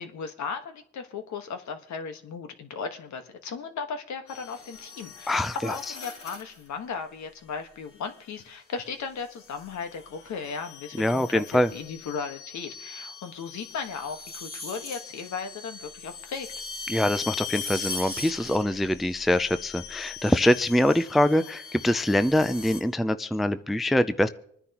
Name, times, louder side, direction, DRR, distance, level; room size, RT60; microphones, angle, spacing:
voice 1, 0.0-16.5, left 5 dB, 65° left, 6 dB, 1.5 m, -36 dB
sound 1, 4.3-6.7 8.0-8.4 9.2-22.8, left 4 dB, 45° left, 2.7 m, -40 dB
voice 2, 5.3-5.8 11.0-11.7 16.9-24.3, left 1 dB, ahead, 12 dB, 0.4 m, -24 dB
25.5 x 9.9 x 3.0 m, 0.69 s
cardioid pair, 90°, 30 cm